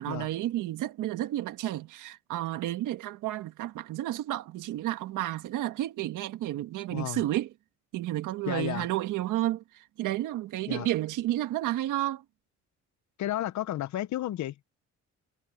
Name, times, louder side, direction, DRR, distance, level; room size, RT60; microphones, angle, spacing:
voice 1, 0.0-7.5 7.9-12.2, right 14 dB, 90° right, 1.6 m, -31 dB
voice 2, 6.9-7.2 8.5-8.9 10.7-10.9 13.2-14.6, left 13 dB, 70° left, 0.8 m, -32 dB
cardioid pair, 90°, 30 cm